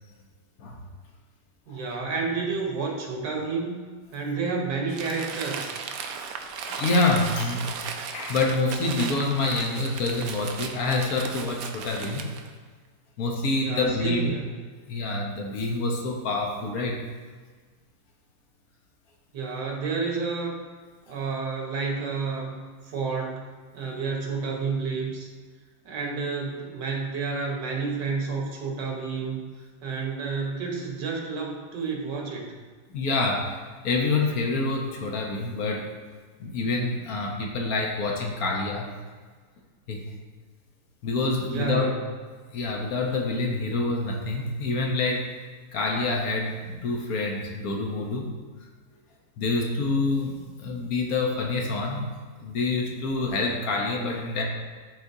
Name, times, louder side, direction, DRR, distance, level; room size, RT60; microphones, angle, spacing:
voice 1, 1.7-3.7 4.1-5.8 13.6-14.6 19.3-20.5 21.1-22.5 22.9-23.4 23.7-25.3 25.9-29.4 29.8-32.6 41.4-42.0, right 4 dB, 90° right, 0 dB, 1.8 m, -30 dB
Crumpling crinkling, 4.9-12.5, right 6 dB, 70° right, 0.9 m, -36 dB
voice 2, 6.6-7.8 8.1-12.3 13.2-14.3 14.9-17.0 32.9-33.6 33.8-36.0 36.4-38.9 39.9-40.0 41.0-41.9 42.5-48.3 49.4-52.1 52.4-54.4, left 3 dB, 65° left, 0 dB, 1.2 m, -27 dB
10.5 x 4.1 x 2.7 m, 1.5 s
omnidirectional pair, 1.8 m